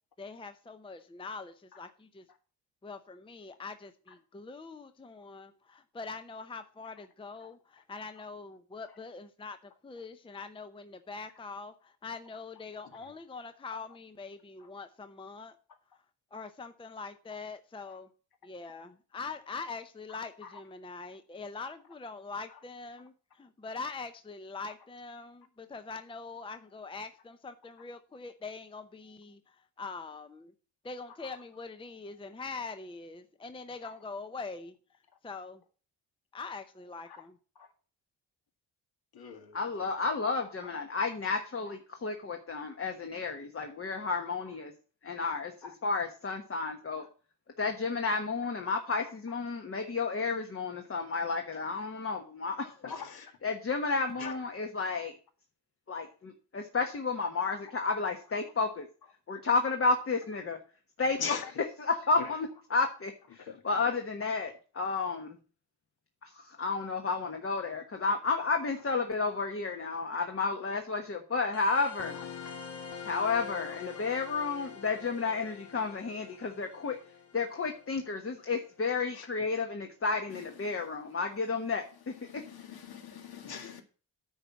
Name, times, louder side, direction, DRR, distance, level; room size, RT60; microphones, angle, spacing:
voice 1, 0.2-2.2 2.8-15.6 15.9-16.0 16.3-18.1 18.4-30.5 30.8-34.7 35.2-35.6 36.3-37.4, left 4 dB, 10° left, 0.7 m, -43 dB
voice 2, 20.1-20.5 31.2-31.4 37.1-37.2 37.6-37.7 39.1-39.9 40.4-40.8 41.7-41.8 43.6-43.7 45.6-45.7 47.0-47.1 48.4-48.5 52.8-53.3 54.2-54.5 57.8-57.9 61.2-61.5 62.2-62.3 63.4-64.0 72.4-72.5 74.0-74.2 74.6-74.7 79.1-79.3 80.3-80.7 82.2-83.8, left 6 dB, 60° left, 2.0 m, -43 dB
voice 3, 39.5-44.7 45.0-47.0 47.6-52.8 53.4-55.1 55.9-58.9 59.3-60.6 61.0-61.4 61.8-65.4 66.2-72.2 73.0-77.0 77.3-82.4, left 4 dB, 30° left, 1.3 m, -32 dB
sound 1, 71.5-78.6, left 6 dB, 75° left, 1.7 m, -45 dB
9.6 x 4.5 x 7.2 m
cardioid pair, 90°, 42 cm